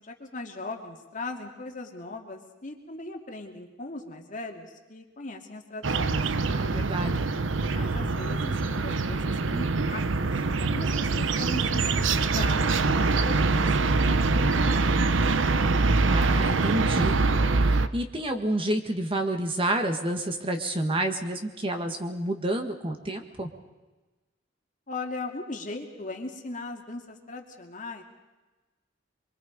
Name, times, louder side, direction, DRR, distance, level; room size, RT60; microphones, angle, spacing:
voice 1, 0.0-6.2 7.7-10.3 10.6-15.3 24.9-28.0, left 2 dB, 45° left, 2 dB, 2.4 m, -39 dB
sound 1, 5.8-17.9, right 3 dB, 80° right, 0.8 m, -24 dB
voice 2, 6.5-7.1 16.0-17.2 17.6-23.5, right 1 dB, 30° right, 5 dB, 1.6 m, -29 dB
25.0 x 23.5 x 5.2 m, 1.2 s
head